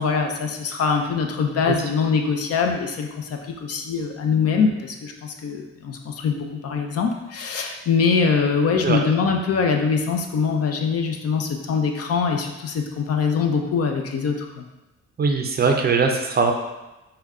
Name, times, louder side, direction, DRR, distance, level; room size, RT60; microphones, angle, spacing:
voice 1, 0.0-14.6, left 5 dB, 50° left, 3 dB, 0.6 m, -23 dB
voice 2, 15.2-16.5, right 4 dB, 35° right, 3 dB, 0.5 m, -21 dB
5.0 x 2.2 x 3.5 m, 1.0 s
cardioid pair, 90°, 30 cm